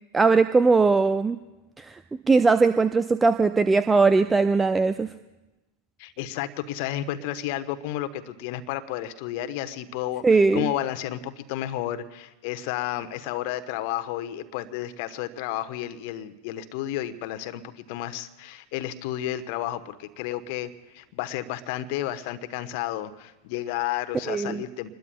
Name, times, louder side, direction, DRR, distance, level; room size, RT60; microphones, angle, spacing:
voice 1, 0.1-1.4 1.8-2.0 2.3-5.1 10.2-10.7 24.3-24.6, right 4 dB, 15° right, 11 dB, 0.5 m, -20 dB
voice 2, 6.0-24.9, left 13 dB, 45° left, 10 dB, 1.0 m, -32 dB
28.0 x 20.5 x 2.3 m, 1.0 s
figure-of-eight pair, 90°, 0 cm